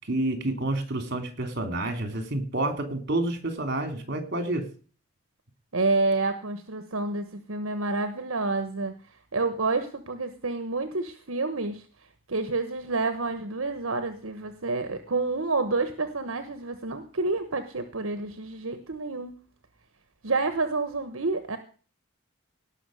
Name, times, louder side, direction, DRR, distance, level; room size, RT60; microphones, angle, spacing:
voice 1, 0.0-4.6, right 2 dB, 55° right, 7 dB, 3.0 m, -29 dB
voice 2, 5.7-8.9 9.3-11.8 12.3-19.3 20.2-21.6, right 3 dB, 80° right, 9 dB, 1.2 m, -29 dB
18.0 x 6.2 x 6.3 m, 0.39 s
head